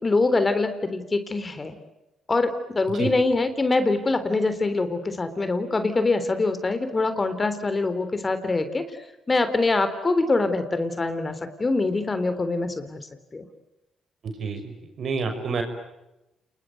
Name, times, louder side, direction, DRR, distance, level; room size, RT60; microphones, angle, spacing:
voice 1, 0.0-1.8 2.3-8.8 9.3-13.0 13.3-13.5, left 3 dB, 30° left, 11 dB, 3.6 m, -24 dB
voice 2, 14.4-15.6, right 4 dB, 60° right, 6 dB, 6.2 m, -28 dB
29.5 x 20.5 x 9.5 m, 0.93 s
supercardioid pair, 60°, 0 cm